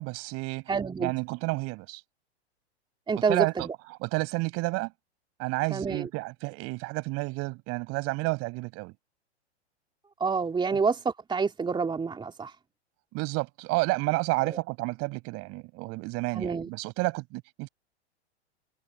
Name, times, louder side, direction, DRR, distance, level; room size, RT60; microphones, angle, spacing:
voice 1, 0.0-0.7 1.0-2.0 3.3-3.7 4.0-4.9 5.4-8.9 13.1-17.7, right 26 dB, 45° right, 6.8 m, -30 dB
voice 2, 0.7-1.1 3.1-3.7 5.7-6.1 10.2-12.5 14.4-14.6 16.3-16.7, right 5 dB, 15° right, 3.1 m, -28 dB
hypercardioid pair, 110°, 34 cm